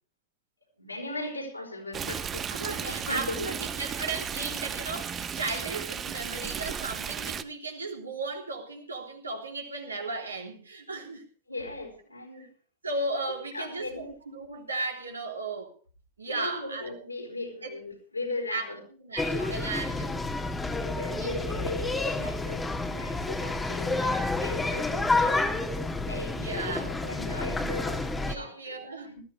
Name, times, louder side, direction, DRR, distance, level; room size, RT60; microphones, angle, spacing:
voice 1, 0.8-3.5 11.5-12.5 13.3-14.1 16.3-18.8 19.4-19.9 20.8-25.6 26.1-29.2, left 2 dB, 85° left, 0 dB, 4.7 m, -38 dB
Stream, 1.9-7.4, right 7 dB, 25° right, 0.9 m, -35 dB
voice 2, 2.5-11.3 12.4-12.5 12.8-15.7 16.2-16.9 17.6-17.7 18.5-20.2 21.1-21.8 26.4-26.9 28.3-29.2, right 3 dB, 80° right, 1 dB, 3.4 m, -35 dB
sound 1, 19.2-28.3, left 2 dB, 10° left, 1.7 m, -29 dB
20.0 x 14.0 x 3.3 m, 0.39 s
figure-of-eight pair, 90°, 0 cm